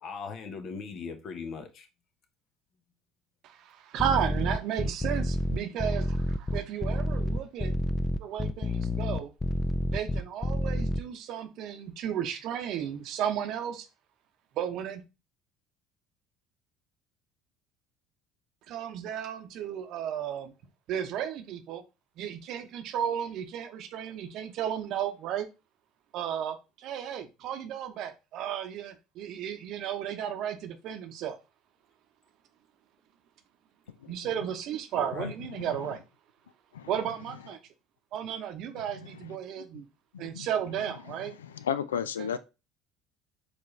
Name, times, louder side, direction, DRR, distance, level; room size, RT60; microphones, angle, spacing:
voice 1, 0.0-1.9 35.0-35.3, left 5 dB, 55° left, 1.0 m, -39 dB
voice 2, 3.4-7.7 8.2-9.3 9.9-13.9 14.6-15.0 18.7-20.5 20.9-21.8 22.2-25.5 26.1-31.4 34.1-36.0 36.9-37.6 38.1-39.9 40.2-41.3 42.2-42.3, right 9 dB, 60° right, 0.8 m, -34 dB
sound 1, 4.0-11.0, left 1 dB, 20° left, 0.4 m, -29 dB
voice 3, 40.1-40.5 41.1-42.4, left 8 dB, 90° left, 0.3 m, -34 dB
4.4 x 3.3 x 3.2 m
hypercardioid pair, 70°, 0 cm